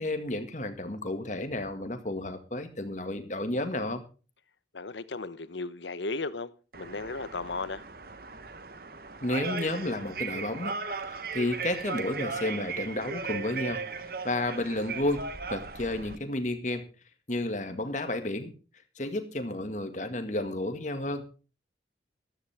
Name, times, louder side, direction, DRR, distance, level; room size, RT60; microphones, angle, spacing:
voice 1, 0.0-4.0 9.2-10.7 11.1-13.8 14.2-16.9 17.3-18.5 19.0-21.3, left 1 dB, 40° left, 2.0 m, -32 dB
voice 2, 4.7-7.8, left 3 dB, 85° left, 1.0 m, -35 dB
sound 1, 6.7-16.2, right 4 dB, 55° right, 1.1 m, -37 dB
14.5 x 13.5 x 3.5 m
head